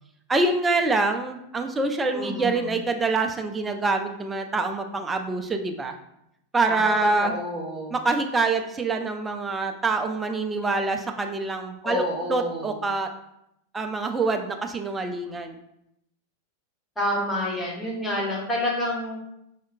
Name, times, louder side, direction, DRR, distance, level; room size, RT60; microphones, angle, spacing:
voice 1, 0.3-6.0 6.5-7.4 7.9-13.1 13.7-15.5, right 3 dB, 15° right, 5 dB, 0.3 m, -25 dB
voice 2, 2.1-2.7 6.7-6.8 7.2-7.9 11.8-12.8 17.0-19.2, left 1 dB, 10° left, -4 dB, 1.0 m, -28 dB
4.7 x 2.1 x 2.5 m, 0.80 s
figure-of-eight pair, 90°, 0 cm